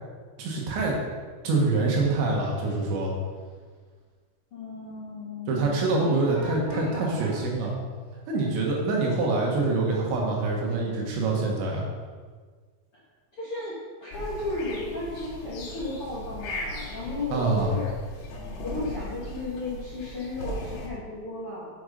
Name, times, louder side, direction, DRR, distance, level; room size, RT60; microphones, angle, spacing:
voice 1, 0.4-1.0 1.4-3.1 5.5-7.7 8.3-11.9 17.3-17.7, right 3 dB, 70° right, -2 dB, 3.6 m, -25 dB
voice 2, 4.5-7.5 13.3-13.8 14.0-17.8 18.6-21.7, left 2 dB, 40° left, -10 dB, 2.1 m, -35 dB
sound 1, 14.1-20.9, left 1 dB, 65° left, 3.6 m, -38 dB
9.0 x 8.0 x 5.2 m, 1.5 s
omnidirectional pair, 5.7 m